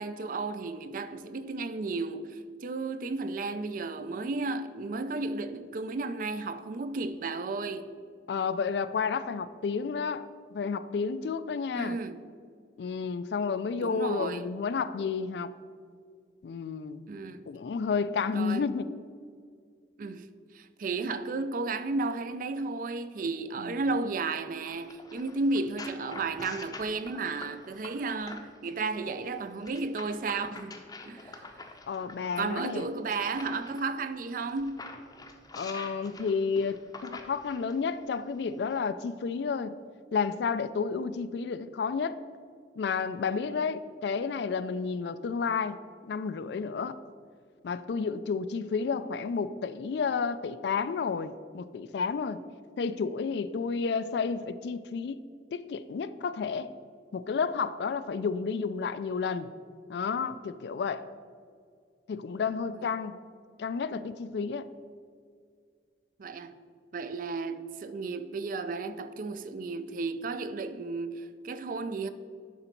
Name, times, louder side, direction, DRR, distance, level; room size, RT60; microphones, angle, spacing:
voice 1, 0.0-7.9 11.8-12.2 13.8-14.4 17.1-17.4 18.3-18.6 20.0-20.3 20.5-31.4 32.4-34.9 66.2-66.6 66.9-72.1, right 3 dB, 50° right, 0.4 m, -33 dB
voice 2, 8.3-12.0 12.8-15.5 16.4-17.1 17.5-18.9 23.6-23.7 31.9-32.9 35.5-39.8 40.1-42.2 42.8-45.8 46.0-47.0 47.6-52.4 52.8-55.2 55.5-56.7 57.1-59.5 59.9-61.1 62.1-63.2 63.6-64.7, left 5 dB, 70° left, 0.3 m, -31 dB
sound 1, 24.6-28.7 29.6-33.8 34.4-37.8 38.6-38.8, left 3 dB, 20° left, 0.6 m, -46 dB
11.0 x 3.9 x 4.5 m
head